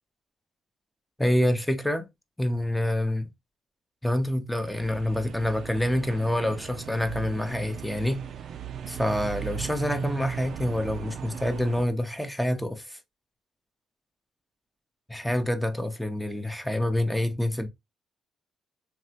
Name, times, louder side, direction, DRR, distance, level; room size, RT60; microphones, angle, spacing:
voice 1, 1.2-2.1 2.4-3.3 4.0-8.2 8.9-13.0 15.1-17.7, left 1 dB, 5° left, 0.6 m, -27 dB
sound 1, 4.6-11.9, right 9 dB, 65° right, 0.3 m, -37 dB
3.1 x 2.4 x 2.7 m
cardioid pair, 90°, 0 cm